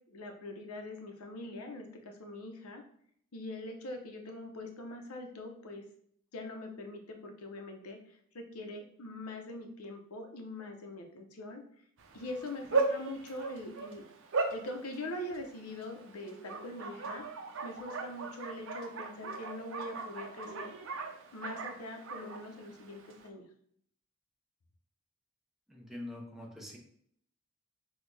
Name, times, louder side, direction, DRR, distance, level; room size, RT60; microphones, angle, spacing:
voice 1, 0.1-2.8 3.3-5.9 6.3-11.6 12.1-14.0 14.5-17.3 17.6-20.7 21.3-23.4, left 1 dB, 90° left, 4 dB, 0.8 m, -43 dB
Bark, 12.0-23.3, right 3 dB, 60° right, 0.6 m, -38 dB
voice 2, 25.7-26.8, left 1 dB, ahead, -3 dB, 0.9 m, -44 dB
6.1 x 2.3 x 3.3 m, 0.64 s
head